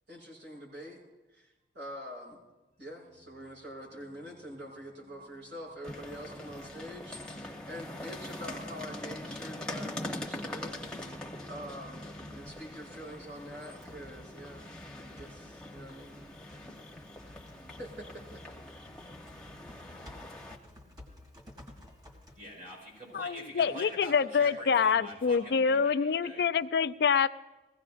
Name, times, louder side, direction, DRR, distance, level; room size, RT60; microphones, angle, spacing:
voice 1, 0.1-1.0 1.3-2.4 2.8-11.2 11.5-14.7 15.0-16.2 17.8-18.4, equal, 85° right, -4 dB, 6.3 m, -45 dB
sound 1, 5.8-20.6, left 1 dB, 5° left, 0.9 m, -43 dB
Typing, 12.4-23.4, left 1 dB, 20° right, 1.9 m, -56 dB
voice 2, 14.8-15.2 15.7-17.8 20.2-20.9 21.1-21.3 21.8-26.5, equal, 50° right, -3 dB, 5.5 m, -48 dB
voice 3, 23.1-27.3, left 6 dB, 65° left, 13 dB, 0.4 m, -26 dB
21.0 x 16.0 x 2.5 m, 1.1 s
head